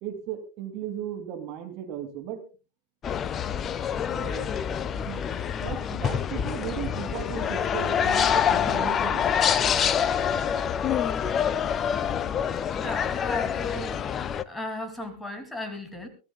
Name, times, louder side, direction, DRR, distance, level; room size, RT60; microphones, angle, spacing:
voice 1, 0.0-2.4 4.1-4.5 5.0-5.2 5.6-9.2, right 9 dB, 40° right, 6 dB, 2.6 m, -36 dB
sound 1, 3.0-14.4, left 8 dB, 25° left, 0.6 m, -26 dB
voice 2, 12.7-14.0 14.5-16.1, left 1 dB, 5° left, 7 dB, 2.8 m, -36 dB
22.5 x 14.5 x 2.3 m, 0.32 s
figure-of-eight pair, 90°, 0 cm